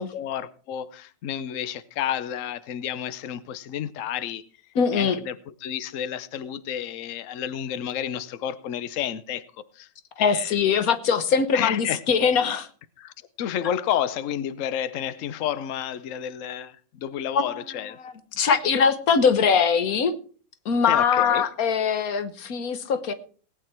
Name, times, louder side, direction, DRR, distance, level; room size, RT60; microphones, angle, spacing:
voice 1, 0.1-4.4 4.9-5.4 5.6-9.5 9.7-9.9 10.2-10.6 11.5-12.0 13.0-18.0 20.9-21.5, left 10 dB, 85° left, 0.7 m, -30 dB
voice 2, 4.7-5.2 10.2-12.7 17.3-17.6 18.0-20.2 20.6-23.1, left 6 dB, 50° left, 1.3 m, -22 dB
18.5 x 9.0 x 4.5 m
omnidirectional pair, 2.3 m